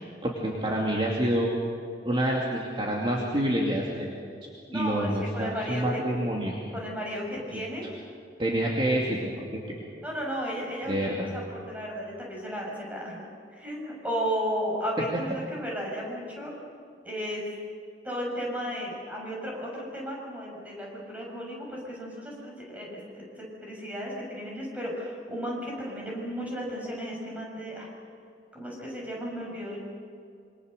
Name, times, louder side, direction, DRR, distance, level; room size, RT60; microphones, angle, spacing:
voice 1, 0.2-1.5 2.0-4.1 4.7-6.6 7.5-7.6 8.4-9.8 10.9-11.3, right 1 dB, 30° right, -3 dB, 2.7 m, -27 dB
voice 2, 4.7-6.0 6.7-7.9 10.0-16.5 17.0-17.4 18.0-27.9 28.5-29.8, equal, 10° right, -3 dB, 7.0 m, -34 dB
27.0 x 25.0 x 6.7 m, 2.4 s
head